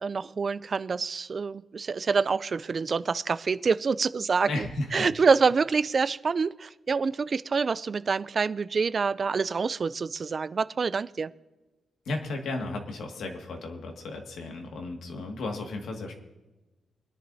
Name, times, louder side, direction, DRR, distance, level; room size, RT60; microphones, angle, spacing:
voice 1, 0.0-11.3, right 5 dB, 30° right, 15 dB, 0.3 m, -26 dB
voice 2, 4.5-5.1 12.1-16.2, left 2 dB, 70° left, 3 dB, 1.9 m, -34 dB
24.0 x 10.5 x 2.7 m, 1.1 s
wide cardioid pair, 175°, 0 cm